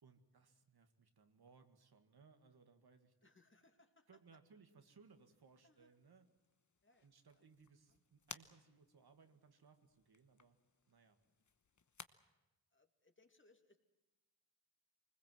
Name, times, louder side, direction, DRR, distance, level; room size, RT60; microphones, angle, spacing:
voice 1, 0.0-3.1 4.1-6.2 7.0-10.6 10.9-11.2, right 5 dB, 75° right, 7 dB, 2.0 m, -66 dB
voice 2, 3.2-4.2 5.6-5.9 6.8-7.5 7.9-8.0 11.2-11.4 12.7-13.8, left 2 dB, 30° left, 5 dB, 2.3 m, -72 dB
sound 1, 5.0-12.1, left 6 dB, 50° left, 1.1 m, -60 dB
24.5 x 20.5 x 7.7 m, 1.0 s
wide cardioid pair, 90°, 38 cm